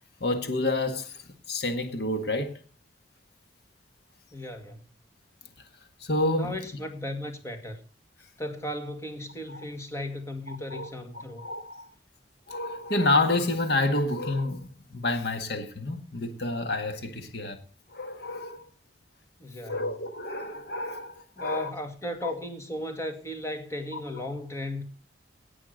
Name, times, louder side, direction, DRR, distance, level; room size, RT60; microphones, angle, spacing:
voice 1, 0.2-2.6 6.0-6.6 9.5-9.6 10.5-10.9 11.4-11.9 12.5-17.6 17.9-18.6 19.6-21.7 22.2-22.3 23.9-24.0, left 2 dB, 60° left, 1.9 m, -29 dB
voice 2, 4.3-4.9 6.3-7.8 8.4-11.5 19.4-19.9 21.4-24.8, left 1 dB, 15° left, 2.1 m, -36 dB
18.0 x 6.2 x 6.5 m
head